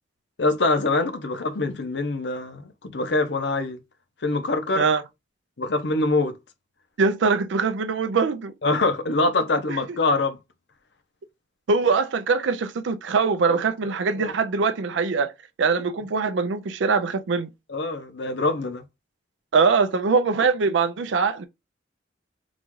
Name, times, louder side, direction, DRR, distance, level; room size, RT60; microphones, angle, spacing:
voice 1, 0.4-3.8 4.2-4.9 5.6-6.4 8.6-10.4 13.5-13.6 14.2-14.3 17.7-18.8, left 2 dB, 65° left, 0.8 m, -24 dB
voice 2, 7.0-8.5 11.7-15.3 15.6-17.5 19.5-21.5, right 4 dB, 80° right, 0.4 m, -22 dB
4.0 x 2.4 x 4.6 m
head